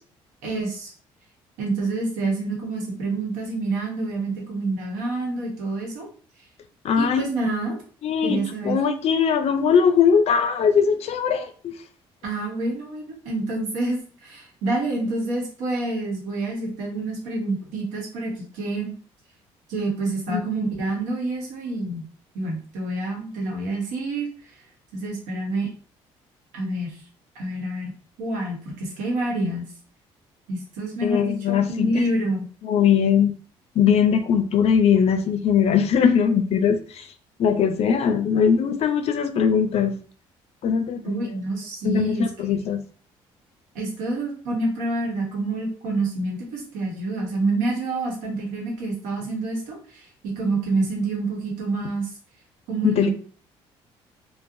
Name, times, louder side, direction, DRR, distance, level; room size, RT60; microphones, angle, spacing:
voice 1, 0.4-0.9 1.6-6.1 6.9-7.8 8.2-8.8 12.2-18.9 19.7-22.0 22.3-24.3 24.9-25.7 26.5-27.0 27.3-27.9 28.2-29.7 30.5-32.5 41.0-42.3 43.7-52.1 52.7-53.1, right 2 dB, 85° right, -1 dB, 0.9 m, -27 dB
voice 2, 6.8-7.2 8.0-11.7 20.3-20.4 31.0-31.9 32.6-33.3 33.8-37.1 37.4-39.9 40.6-41.3 41.8-42.8 52.8-53.1, left 7 dB, 55° left, 9 dB, 0.4 m, -20 dB
2.4 x 2.0 x 2.6 m, 0.43 s
supercardioid pair, 65°, 13 cm